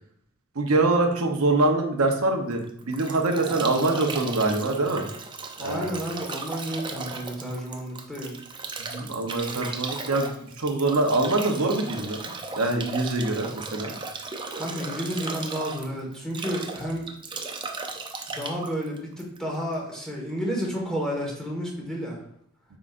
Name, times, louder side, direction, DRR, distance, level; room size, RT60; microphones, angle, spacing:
voice 1, 0.5-5.1 5.6-5.9 8.8-13.9, right 2 dB, 80° right, 3 dB, 0.8 m, -24 dB
Bathtub (filling or washing) / Drip / Trickle dribble, 2.5-19.7, right 3 dB, 20° right, 0.5 m, -36 dB
voice 2, 5.6-8.4 14.5-17.0 18.3-22.2, equal, 5° left, -3 dB, 1.5 m, -31 dB
7.6 x 4.8 x 2.5 m, 0.69 s
head